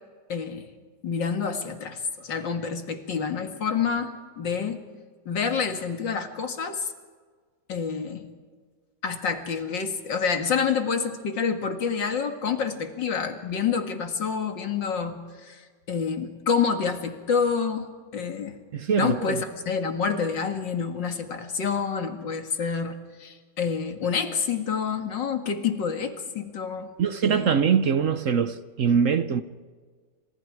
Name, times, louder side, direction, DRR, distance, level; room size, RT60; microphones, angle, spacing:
voice 1, 0.3-0.7 1.0-4.8 5.3-6.9 7.7-8.3 9.0-15.6 15.9-18.6 19.0-26.9 27.2-27.5, left 6 dB, 80° left, 2.6 m, -28 dB
voice 2, 18.7-19.4 27.0-29.4, right 7 dB, 55° right, 1.0 m, -23 dB
29.5 x 27.0 x 4.8 m
omnidirectional pair, 2.0 m